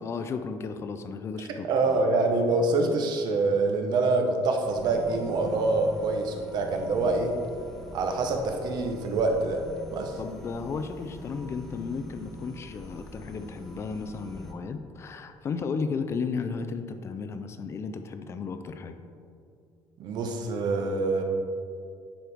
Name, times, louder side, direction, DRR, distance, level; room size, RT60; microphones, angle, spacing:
voice 1, 0.0-2.0 10.2-19.0, left 5 dB, 35° left, 9 dB, 0.4 m, -34 dB
voice 2, 1.7-7.4 7.9-9.6 9.9-10.1 20.0-21.2, right 3 dB, 60° right, 4 dB, 0.8 m, -25 dB
sound 1, 4.7-14.5, equal, 5° left, 0.8 m, -44 dB
10.0 x 4.5 x 3.5 m, 2.4 s
cardioid pair, 155°, 8 cm